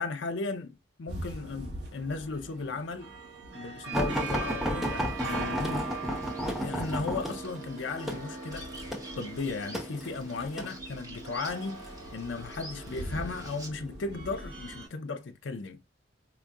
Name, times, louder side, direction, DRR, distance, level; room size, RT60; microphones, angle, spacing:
voice 1, 0.0-3.1 3.5-5.9 6.6-8.7 9.2-11.8 12.1-15.8, left 3 dB, 75° left, 0.6 m, -36 dB
sound 1, 1.1-14.9, right 3 dB, 60° right, 1.2 m, -40 dB
sound 2, 3.9-10.7 11.5-11.9 12.9-13.5 14.3-14.4 14.8-14.9, equal, ahead, 0.8 m, -33 dB
Bird vocalization bird call bird song, 4.8-13.7, right 1 dB, 20° right, 1.3 m, -49 dB
5.0 x 2.6 x 2.3 m
head